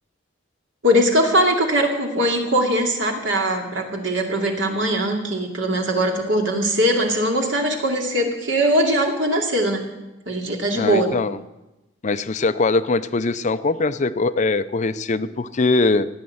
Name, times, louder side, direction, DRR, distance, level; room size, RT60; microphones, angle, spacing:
voice 1, 0.8-9.8 10.3-11.1, equal, 75° right, 2 dB, 2.7 m, -21 dB
voice 2, 10.7-11.4 12.0-16.1, left 3 dB, 40° left, 13 dB, 0.5 m, -21 dB
16.0 x 9.7 x 7.8 m, 1.0 s
head